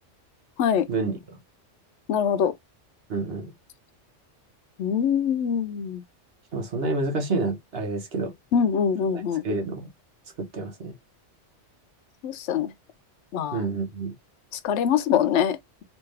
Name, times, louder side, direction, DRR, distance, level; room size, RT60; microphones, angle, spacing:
voice 1, 0.9-1.4 3.1-3.5 6.5-8.3 9.1-9.9 10.4-10.9 13.5-14.1, right 3 dB, 55° right, 1.2 m, -29 dB
voice 2, 2.1-2.5 4.8-6.0 8.5-9.4 12.2-12.7 13.3-13.6 14.6-15.6, left 8 dB, 75° left, 0.9 m, -23 dB
3.4 x 2.7 x 3.2 m
omnidirectional pair, 1.2 m